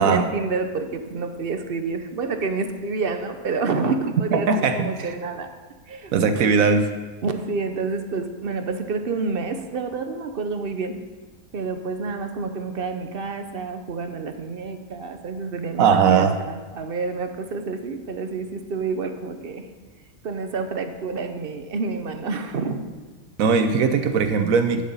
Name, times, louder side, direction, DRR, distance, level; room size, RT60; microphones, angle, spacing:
voice 1, 0.0-5.5 5.9-6.1 6.4-6.7 7.2-11.0 11.5-19.7 20.2-22.8, right 4 dB, 50° right, 7 dB, 0.8 m, -28 dB
voice 2, 4.3-5.1 6.1-6.9 15.8-16.4 23.4-24.8, right 5 dB, 75° right, 8 dB, 1.0 m, -19 dB
9.7 x 7.7 x 5.4 m, 1.3 s
omnidirectional pair, 1.5 m